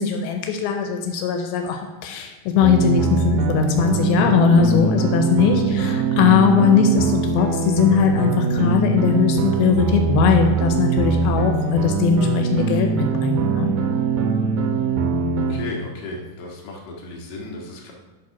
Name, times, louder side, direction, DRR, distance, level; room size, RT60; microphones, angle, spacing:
voice 1, 0.0-13.7, left 6 dB, 85° left, 5 dB, 2.6 m, -20 dB
sound 1, 2.6-15.5, right 4 dB, 75° right, 1.6 m, -22 dB
voice 2, 15.5-17.9, left 2 dB, 55° left, -2 dB, 2.6 m, -34 dB
10.5 x 4.2 x 5.8 m, 1.1 s
omnidirectional pair, 4.3 m